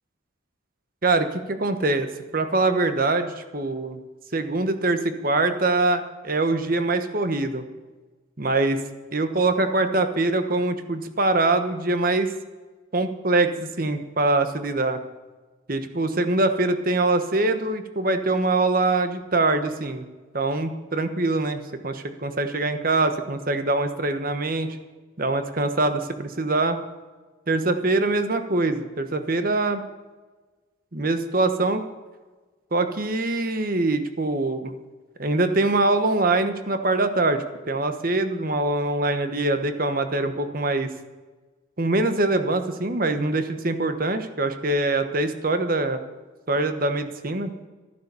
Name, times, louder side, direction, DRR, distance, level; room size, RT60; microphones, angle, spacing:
voice 1, 1.0-2.1 2.3-4.0 4.3-7.6 8.4-8.8 9.1-12.3 12.9-15.0 15.7-20.1 20.3-24.7 25.2-26.8 27.5-29.8 30.9-31.8 32.7-34.7 35.2-40.9 41.8-46.0 46.5-47.5, right 2 dB, 45° right, 8 dB, 1.2 m, -23 dB
13.0 x 11.0 x 6.9 m, 1.3 s
head